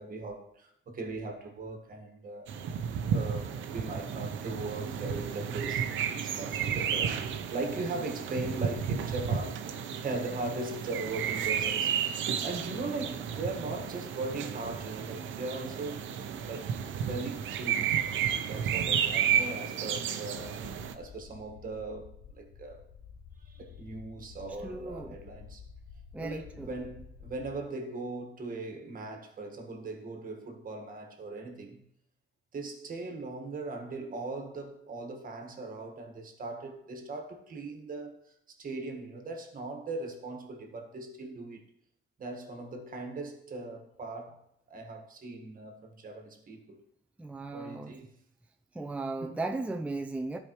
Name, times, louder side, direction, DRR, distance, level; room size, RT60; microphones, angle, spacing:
voice 1, 0.0-2.5 3.1-12.1 12.4-16.0 16.4-18.0 18.4-22.8 23.4-25.6 26.2-31.8 32.5-38.2 38.5-41.6 42.2-44.4 44.7-46.8 47.5-48.1 49.2-49.4, right 2 dB, 45° right, 1.5 m, -39 dB
sound 1, 2.5-20.9, right 8 dB, 75° right, 0.7 m, -32 dB
sound 2, 20.4-27.6, left 6 dB, 60° left, 0.7 m, -51 dB
voice 2, 24.6-25.2 26.1-26.7 47.2-48.0 48.7-50.4, right 2 dB, 5° right, 0.5 m, -36 dB
12.0 x 4.8 x 3.1 m
cardioid pair, 90°, 20 cm